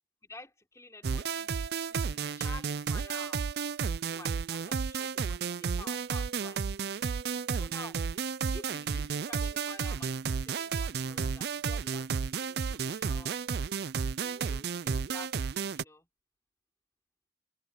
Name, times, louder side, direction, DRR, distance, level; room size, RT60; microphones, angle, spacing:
voice 1, 0.2-3.4 4.0-6.6 7.5-8.0 8.5-13.5 14.2-16.1, left 2 dB, 15° left, 4.4 m, -50 dB
sound 1, 1.0-15.8, right 6 dB, 55° right, 0.4 m, -32 dB
head